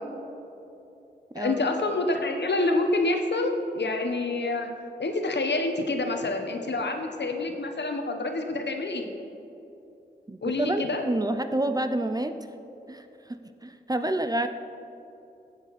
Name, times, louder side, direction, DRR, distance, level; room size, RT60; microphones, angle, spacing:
voice 1, 1.4-4.7 5.0-9.1 10.4-11.0, left 2 dB, 75° left, 5 dB, 1.1 m, -27 dB
voice 2, 10.3-12.4 12.9-14.5, right 1 dB, 20° right, 9 dB, 0.5 m, -28 dB
15.5 x 7.4 x 4.2 m, 2.8 s
wide cardioid pair, 65°, 18 cm